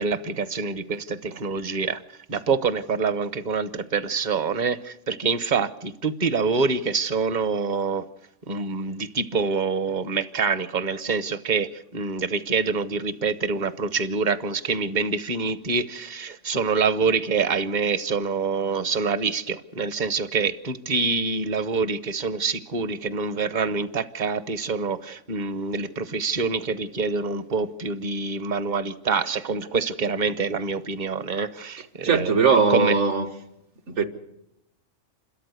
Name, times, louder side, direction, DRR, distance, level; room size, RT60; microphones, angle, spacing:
voice 1, 0.0-2.0 2.3-8.1 8.5-32.9, right 4 dB, 40° right, 0.9 m, -26 dB
voice 2, 32.0-33.3 33.9-34.0, right 5 dB, 70° right, 1.7 m, -20 dB
28.0 x 13.0 x 8.1 m
omnidirectional pair, 1.3 m